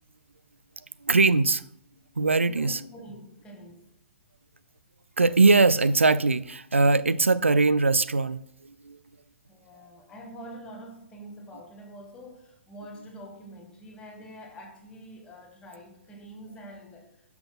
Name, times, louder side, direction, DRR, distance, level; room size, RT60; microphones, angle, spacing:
voice 1, 1.0-1.6 2.2-2.8 5.2-9.0, right 3 dB, 80° right, 0.4 m, -21 dB
voice 2, 2.5-3.9 9.5-17.4, equal, 15° left, 1.3 m, -45 dB
12.5 x 5.9 x 2.2 m
figure-of-eight pair, 115°, 7 cm